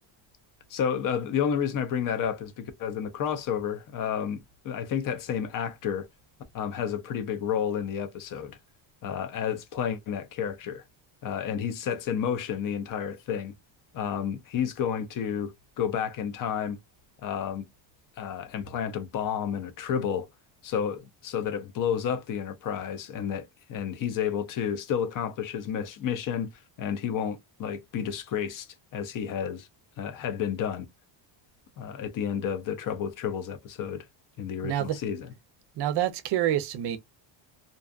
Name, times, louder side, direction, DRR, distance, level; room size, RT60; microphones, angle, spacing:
voice 1, 0.7-6.1 6.5-8.6 9.0-10.8 11.2-13.5 13.9-16.8 17.2-17.7 18.2-20.3 20.6-26.5 26.8-28.7 28.9-29.7 30.0-30.9 31.8-34.0 34.4-35.3, left 8 dB, 45° left, 0.4 m, -31 dB
voice 2, 34.6-35.0 35.8-37.0, right 11 dB, 55° right, 0.5 m, -27 dB
2.6 x 2.3 x 2.3 m
cardioid pair, 175°, 48 cm